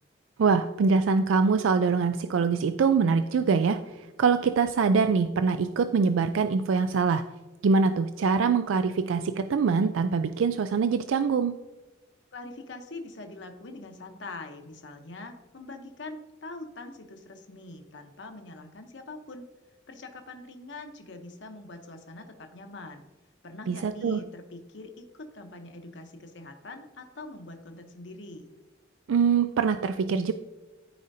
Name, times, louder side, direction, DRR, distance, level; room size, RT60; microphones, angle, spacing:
voice 1, 0.4-7.2 7.6-11.5 23.7-24.2 29.1-30.3, right 5 dB, 85° right, 9 dB, 0.4 m, -24 dB
voice 2, 12.3-19.5 19.9-23.0 23.4-28.5, left 2 dB, 65° left, 5 dB, 0.9 m, -43 dB
13.5 x 5.0 x 2.7 m, 1.2 s
head